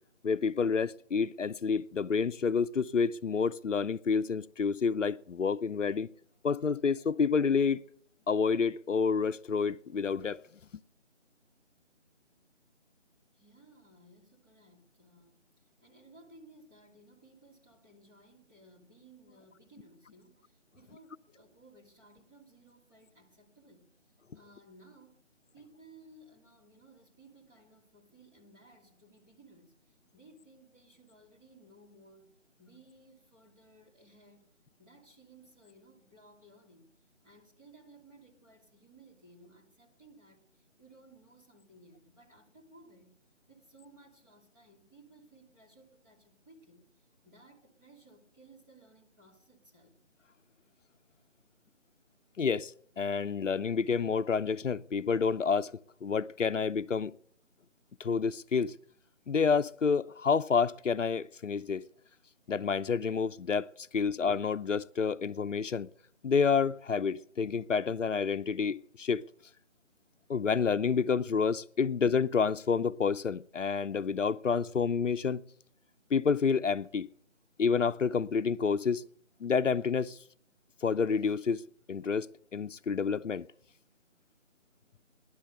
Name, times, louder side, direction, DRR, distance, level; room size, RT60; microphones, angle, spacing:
voice 1, 0.2-6.1 6.4-7.8 8.3-10.4 52.4-57.1 58.0-58.7 59.3-61.8 62.5-65.9 66.2-69.2 70.3-75.4 76.1-77.1 77.6-79.0 79.4-80.2 80.8-81.6 81.9-83.5, left 5 dB, 80° left, 0.6 m, -29 dB
voice 2, 13.3-23.9 24.3-25.3 25.5-32.3 32.6-34.5 34.8-36.9 37.2-43.1 43.5-50.0, right 2 dB, 15° right, 2.6 m, -59 dB
17.0 x 11.0 x 6.6 m
figure-of-eight pair, 155°, 37 cm